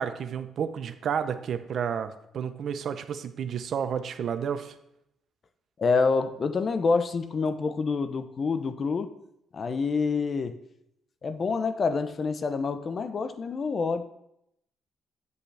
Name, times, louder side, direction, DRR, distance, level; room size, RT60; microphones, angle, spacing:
voice 1, 0.0-4.7, right 7 dB, 60° right, 10 dB, 0.7 m, -31 dB
voice 2, 5.8-9.1 9.5-10.6 11.2-14.1, left 4 dB, 45° left, 10 dB, 0.7 m, -27 dB
8.4 x 8.0 x 3.4 m, 0.78 s
cardioid pair, 90°, 0 cm